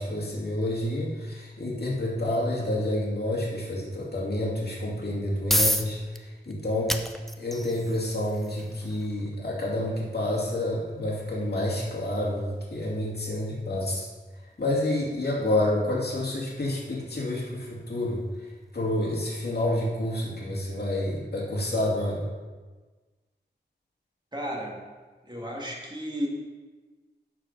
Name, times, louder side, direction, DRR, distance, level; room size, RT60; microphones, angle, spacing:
voice 1, 0.0-7.0 7.4-14.1 14.6-18.2 18.7-22.2, left 1 dB, 60° left, -4 dB, 2.3 m, -29 dB
sound 1, 5.0-19.9, equal, ahead, 0.5 m, -36 dB
voice 2, 24.3-24.8 25.2-26.3, equal, 25° right, -2 dB, 2.0 m, -33 dB
11.5 x 4.7 x 5.3 m, 1.3 s
wide cardioid pair, 75°, 18 cm